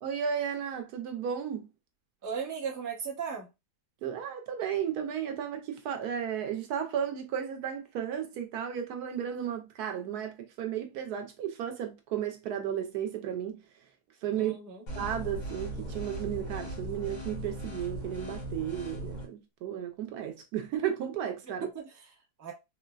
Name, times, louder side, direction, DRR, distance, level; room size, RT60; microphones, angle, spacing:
voice 1, 0.0-1.7 4.0-13.6 14.2-14.6 15.0-21.7, right 9 dB, 75° right, 1.0 m, -34 dB
voice 2, 2.2-3.5 14.4-14.8 21.6-22.5, right 6 dB, 20° right, 0.5 m, -37 dB
sound 1, 14.9-19.3, right 1 dB, 70° left, 1.9 m, -38 dB
3.8 x 2.1 x 2.3 m
omnidirectional pair, 1.8 m